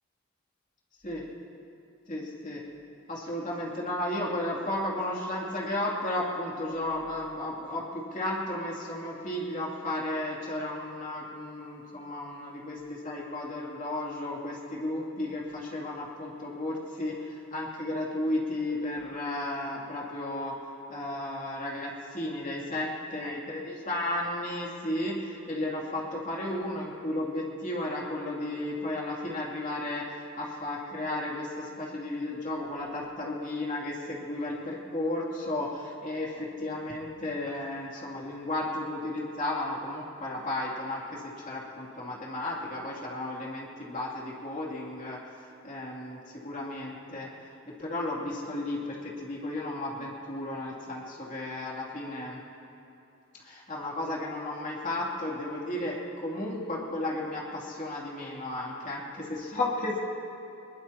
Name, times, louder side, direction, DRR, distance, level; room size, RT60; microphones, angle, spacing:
voice 1, 2.1-2.6 3.1-20.5 20.9-47.3 47.7-52.4 53.4-60.0, left 1 dB, 35° left, -4 dB, 2.7 m, -34 dB
21.5 x 21.0 x 2.9 m, 2.9 s
head